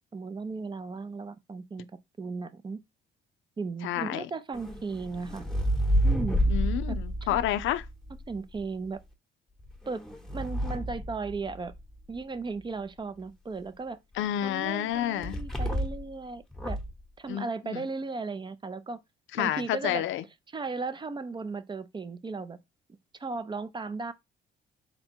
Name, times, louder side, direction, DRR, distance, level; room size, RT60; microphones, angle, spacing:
voice 1, 0.1-1.9 2.2-2.8 3.6-5.4 6.0-6.4 6.9-7.0 7.3-7.4 8.3-9.0 9.9-10.0 10.3-11.7 12.1-14.0 14.4-16.8 17.2-19.0 19.4-20.0 20.5-22.6 23.2-24.1, right 4 dB, 25° right, 0.4 m, -36 dB
voice 2, 3.8-4.3 6.5-7.8 14.2-15.4 17.3-17.9 19.3-20.2, left 12 dB, 80° left, 0.4 m, -30 dB
sound 1, 4.5-8.6 9.6-11.9 15.2-16.1 16.5-17.0, equal, 5° left, 0.9 m, -29 dB
4.0 x 2.2 x 4.4 m
cardioid pair, 90°, 20 cm